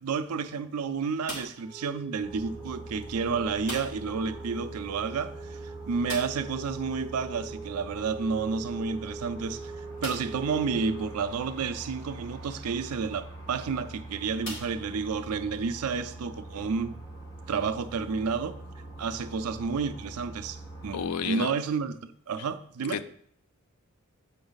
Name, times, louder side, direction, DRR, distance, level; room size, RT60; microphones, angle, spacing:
voice 1, 0.0-9.7 10.0-17.0 17.5-18.6 19.0-20.6 20.8-21.9 22.3-23.0, right 5 dB, 75° right, 0.4 m, -31 dB
sound 1, 1.2-1.8 3.6-4.2 4.4-4.5 4.9-5.0 6.0-6.6 8.4-8.5 9.1-9.2 10.0-10.5 11.2-11.3 13.3-13.5 14.4-15.3, left 1 dB, 55° left, 2.1 m, -40 dB
Wind instrument woodwind instrument, 1.6-11.3, right 4 dB, 10° right, 0.6 m, -43 dB
sound 2, 2.2-21.1, right 2 dB, 15° left, 1.4 m, -44 dB
voice 2, 20.9-21.5 22.9-23.1, left 7 dB, 85° left, 0.4 m, -31 dB
8.0 x 3.9 x 4.0 m
head